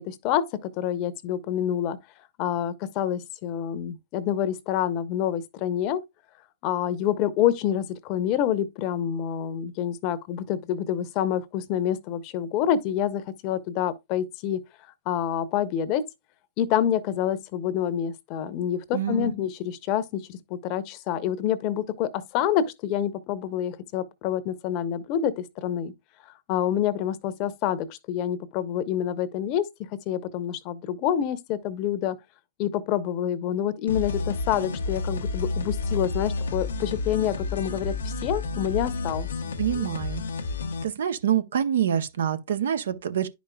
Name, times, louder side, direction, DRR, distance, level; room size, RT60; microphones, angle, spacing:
voice 1, 0.0-2.0 2.4-6.0 6.6-14.6 15.1-16.0 16.6-25.9 26.5-29.7 30.1-32.2 32.6-39.5 39.8-39.9, left 10 dB, 45° left, 0.8 m, -27 dB
voice 2, 18.9-19.3 39.6-40.2 40.8-43.3, right 9 dB, 80° right, 0.7 m, -26 dB
sound 1, 33.9-40.8, left 3 dB, 85° left, 0.8 m, -30 dB
10.0 x 5.2 x 2.3 m
hypercardioid pair, 115°, 0 cm